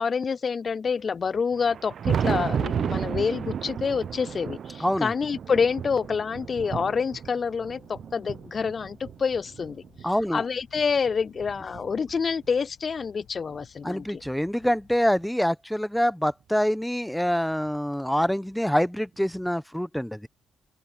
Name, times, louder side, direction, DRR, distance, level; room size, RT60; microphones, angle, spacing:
voice 1, 0.0-14.0, left 5 dB, 40° left, 0.3 m, -27 dB
Thunder, 1.5-10.1 10.7-12.4 13.6-13.7 14.2-14.3 16.2-16.3 17.7-17.8 19.3-19.4, right 8 dB, 55° right, 0.8 m, -33 dB
voice 2, 4.8-5.1 10.0-10.4 13.8-20.3, equal, ahead, 1.1 m, -25 dB
sound 1, 6.8-15.3, left 11 dB, 75° left, 7.9 m, -58 dB
open air
cardioid pair, 90°, 0 cm